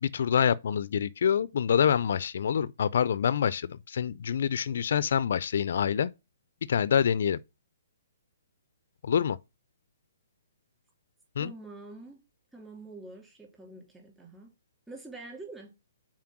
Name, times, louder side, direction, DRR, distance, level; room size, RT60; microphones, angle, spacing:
voice 1, 0.0-6.1 6.7-7.4 9.0-9.4 11.4-11.5, left 8 dB, 65° left, 0.4 m, -26 dB
voice 2, 11.4-12.2 12.5-14.5 14.9-15.7, right 2 dB, 10° right, 2.7 m, -46 dB
5.9 x 4.3 x 5.9 m
hypercardioid pair, 155°, 0 cm